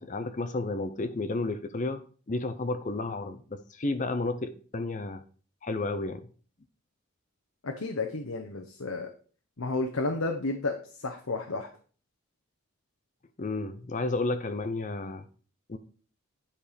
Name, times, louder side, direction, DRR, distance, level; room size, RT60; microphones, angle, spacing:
voice 1, 0.0-2.0 2.3-5.2 5.6-6.2 13.4-15.2 15.7-15.8, left 2 dB, 35° left, 0.6 m, -32 dB
voice 2, 7.6-9.1 9.6-11.7, left 3 dB, 80° left, 0.9 m, -32 dB
9.9 x 4.4 x 5.1 m
head